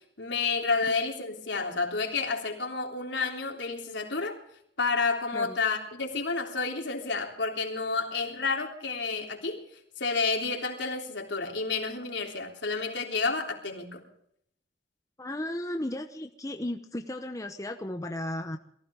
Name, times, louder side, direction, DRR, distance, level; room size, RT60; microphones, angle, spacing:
voice 1, 0.2-4.4 4.8-9.6 10.0-14.0, left 4 dB, 75° left, 3.5 m, -30 dB
voice 2, 15.2-18.6, left 1 dB, 20° left, 0.9 m, -35 dB
23.0 x 15.5 x 3.7 m
head